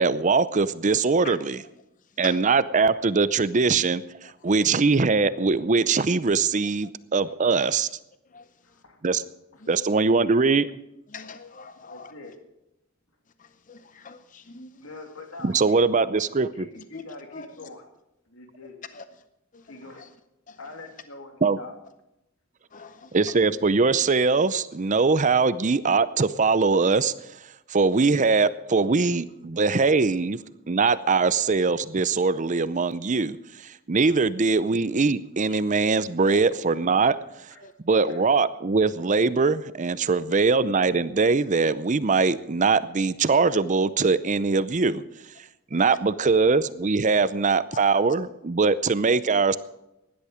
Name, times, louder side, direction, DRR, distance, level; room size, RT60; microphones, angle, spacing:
voice 1, 0.0-1.6 2.2-7.9 9.0-9.2 9.7-10.7 15.4-16.5 21.4-21.6 23.1-27.1 27.7-30.4 30.7-33.4 33.9-37.2 37.9-45.0 45.7-49.6, right 4 dB, 35° right, 16 dB, 0.6 m, -22 dB
voice 2, 8.6-9.0 9.5-9.6 11.8-12.3 14.7-17.8 18.3-18.8 19.6-20.1 20.6-21.7 22.7-22.9 37.5-37.6 38.1-38.2, left 2 dB, 90° left, 4 dB, 2.6 m, -44 dB
voice 3, 11.1-12.1 13.4-14.8 15.5-15.7 16.7-17.0 17.3-17.7 18.9-19.0 19.5-20.1 20.5-20.6 22.7-23.4 35.5-35.6 36.3-36.4 37.0-37.1 37.6-38.1 45.7-45.8, left 5 dB, 40° left, 11 dB, 0.7 m, -44 dB
17.0 x 11.5 x 5.0 m, 0.89 s
head